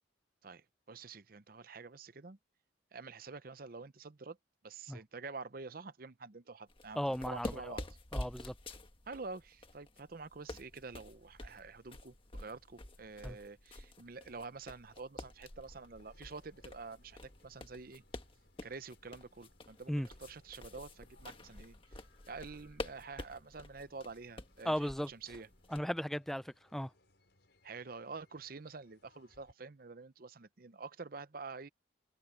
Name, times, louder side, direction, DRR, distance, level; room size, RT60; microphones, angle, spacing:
voice 1, 0.4-2.4 2.9-4.4 4.6-7.0 7.2-7.8 9.1-18.0 18.6-22.0 22.3-25.5 27.6-31.7, right 4 dB, 45° right, 0.7 m, -48 dB
sound 1, 6.7-25.8, left 1 dB, 25° left, 1.5 m, -48 dB
voice 2, 7.0-7.8 8.1-8.5 13.2-13.4 19.9-20.1 24.6-25.1 25.7-26.9, equal, ahead, 0.5 m, -36 dB
sound 2, 10.7-29.5, left 2 dB, 60° left, 7.5 m, -71 dB
head